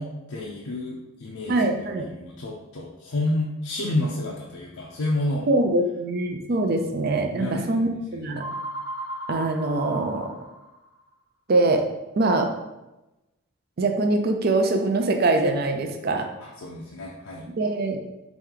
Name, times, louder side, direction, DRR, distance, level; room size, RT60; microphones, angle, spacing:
voice 1, 0.0-5.5 6.8-6.9 7.3-8.3 16.4-17.5, left 1 dB, 80° left, -3 dB, 0.5 m, -30 dB
voice 2, 1.5-2.1 5.5-8.4 9.3-10.3 11.5-11.9 12.2-12.5 13.8-16.3 17.6-18.0, right 2 dB, 45° right, 4 dB, 0.4 m, -23 dB
sound 1, 8.4-11.0, right 1 dB, 20° right, 1.2 m, -36 dB
3.2 x 3.0 x 3.7 m, 0.98 s
head